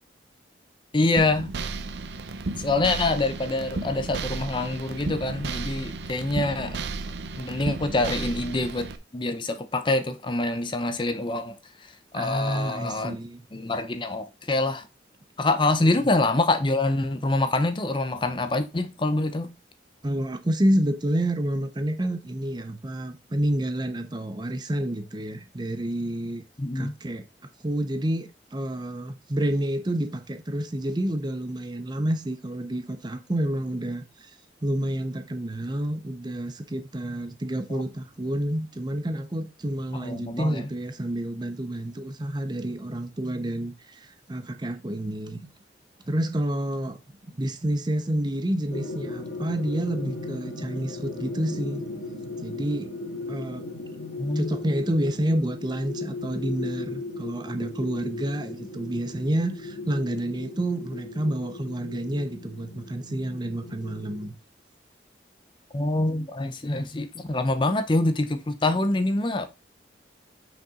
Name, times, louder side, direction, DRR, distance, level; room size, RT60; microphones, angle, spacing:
voice 1, 0.9-1.5 2.6-6.8 7.4-11.6 12.1-13.2 13.5-14.9 15.4-19.5 26.6-26.9 37.7-37.8 39.9-40.7 54.2-54.5 65.7-69.5, left 2 dB, 30° left, 0.6 m, -25 dB
sound 1, 1.2-9.0, right 3 dB, 85° right, 0.7 m, -33 dB
voice 2, 12.1-13.4 20.0-26.4 26.7-27.2 27.6-34.3 34.6-45.5 46.1-47.0 47.4-51.8 52.4-52.9 53.3-53.7 54.4-64.3, right 1 dB, 25° right, 0.6 m, -29 dB
sound 2, 48.7-64.3, left 3 dB, 85° left, 1.8 m, -37 dB
5.9 x 5.3 x 3.7 m
head